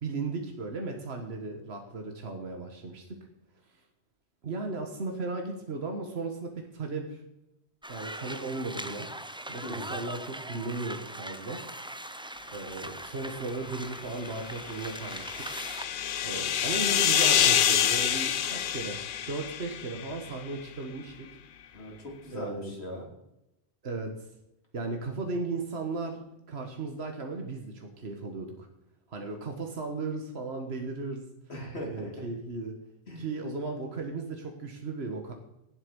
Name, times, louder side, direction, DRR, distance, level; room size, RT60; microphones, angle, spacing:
voice 1, 0.0-3.0 4.4-7.2 7.9-9.1 9.5-11.6 12.5-15.6 16.2-19.0 19.3-21.3 22.3-22.7 23.8-24.1 24.7-28.7 29.1-31.3 31.9-32.7 33.2-35.3, right 3 dB, 75° right, 3 dB, 1.8 m, -36 dB
sound 1, 7.8-15.9, right 1 dB, 5° right, 0.6 m, -41 dB
sound 2, 14.6-20.2, left 9 dB, 60° left, 0.7 m, -27 dB
voice 2, 21.7-23.1 31.5-32.3 33.1-33.3, equal, 80° left, -1 dB, 3.9 m, -40 dB
17.0 x 7.9 x 5.4 m, 0.88 s
omnidirectional pair, 1.1 m